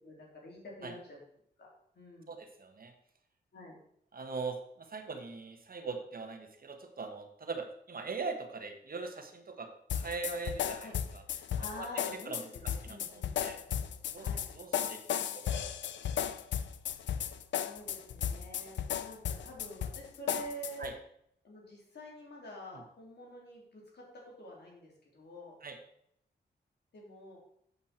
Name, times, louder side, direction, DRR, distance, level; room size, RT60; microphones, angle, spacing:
voice 1, 0.0-1.2 1.6-1.7 1.9-2.3 3.5-3.7 10.8-11.0 11.3-13.4 14.2-14.4 17.5-20.9 21.4-24.0 24.4-25.5 26.9-27.4, equal, 65° left, -2 dB, 3.5 m, -47 dB
voice 2, 2.3-2.9 4.1-11.2 11.8-13.6 14.1-14.3 14.5-15.8 20.8-20.9 25.6-25.8, right 4 dB, 55° right, 5 dB, 1.4 m, -41 dB
sound 1, 9.9-20.9, left 9 dB, 90° left, 0.5 m, -35 dB
8.5 x 7.3 x 4.4 m, 0.71 s
cardioid pair, 60°, 18 cm